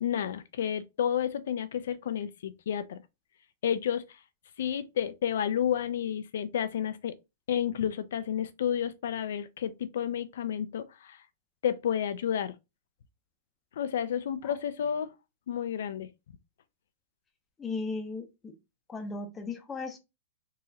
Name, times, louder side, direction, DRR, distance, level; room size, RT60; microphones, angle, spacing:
voice 1, 0.0-3.0 3.6-4.0 4.6-7.2 7.5-11.2 11.6-12.5 13.8-15.1 15.5-16.1, left 9 dB, 65° left, 0.4 m, -31 dB
voice 2, 17.6-18.5 18.9-20.0, left 3 dB, 10° left, 0.6 m, -36 dB
3.9 x 2.8 x 2.6 m
supercardioid pair, 170°, 0 cm